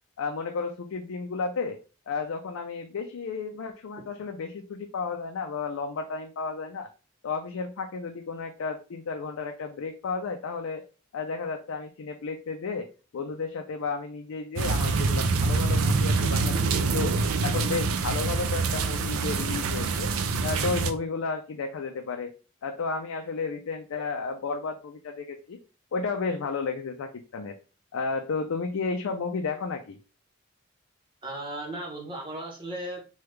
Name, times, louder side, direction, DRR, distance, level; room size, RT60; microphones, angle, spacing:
voice 1, 0.2-1.8 2.1-6.9 7.2-10.8 11.1-12.9 13.1-17.1 17.4-20.1 20.4-22.3 22.6-25.6 25.9-27.6 27.9-30.0, left 4 dB, 80° left, 4 dB, 0.4 m, -32 dB
sound 1, 14.6-20.9, right 4 dB, 85° right, 0.4 m, -25 dB
voice 2, 31.2-33.0, right 1 dB, 25° right, 0 dB, 0.9 m, -36 dB
3.3 x 2.3 x 3.2 m, 0.34 s
head